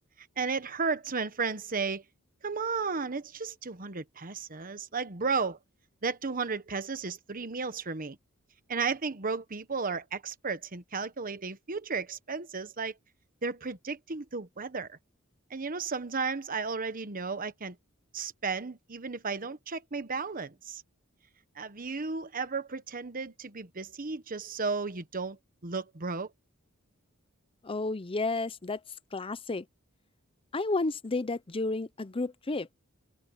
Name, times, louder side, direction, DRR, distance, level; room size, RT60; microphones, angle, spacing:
voice 1, 0.2-2.0 2.4-5.6 6.0-8.2 8.7-13.0 13.4-15.0 15.5-17.8 18.1-20.8 21.6-26.3, right 4 dB, 45° right, 1.2 m, -34 dB
voice 2, 27.6-28.8 29.1-29.7 30.5-32.7, left 3 dB, 25° left, 0.6 m, -31 dB
head